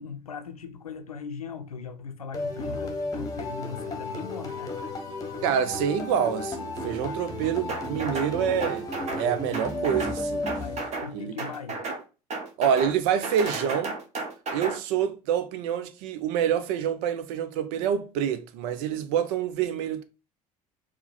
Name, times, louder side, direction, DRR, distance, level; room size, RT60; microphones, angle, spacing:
voice 1, 0.0-4.8 10.6-11.8, left 5 dB, 85° left, 0.6 m, -39 dB
sound 1, 2.3-11.3, left 2 dB, 20° left, 1.0 m, -33 dB
voice 2, 5.4-8.9 9.2-10.5 11.1-11.3 12.6-14.0 14.5-20.0, right 8 dB, 55° right, 0.5 m, -27 dB
sound 2, 7.7-8.3 8.6-9.3 9.5-10.2 10.5-11.1 11.4-12.0 12.3-12.9 13.2-14.8, right 3 dB, 40° right, 1.0 m, -33 dB
4.5 x 2.1 x 3.9 m
figure-of-eight pair, 65°, 18 cm